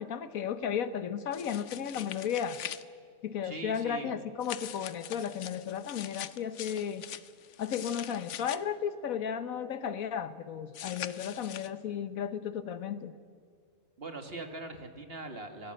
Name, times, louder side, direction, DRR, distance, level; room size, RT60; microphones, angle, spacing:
voice 1, 0.0-2.6 3.2-7.1 7.6-13.1, left 8 dB, 80° left, 12 dB, 1.4 m, -34 dB
sound 1, 1.3-2.8 4.4-8.6 10.7-11.7, left 10 dB, 65° left, 1.0 m, -43 dB
voice 2, 3.4-4.1 14.0-15.7, right 2 dB, 45° right, 6 dB, 2.0 m, -41 dB
23.5 x 17.5 x 7.7 m, 2.2 s
omnidirectional pair, 1.4 m